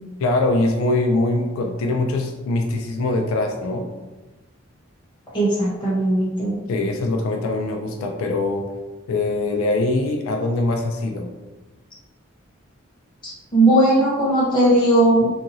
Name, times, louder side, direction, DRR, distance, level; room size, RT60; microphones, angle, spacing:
voice 1, 0.2-3.9 6.7-8.7 9.1-11.3, left 2 dB, 80° left, 3 dB, 0.3 m, -22 dB
voice 2, 5.3-6.6 13.5-15.4, right 1 dB, 20° left, -8 dB, 1.0 m, -17 dB
2.8 x 2.4 x 2.6 m, 1.1 s
head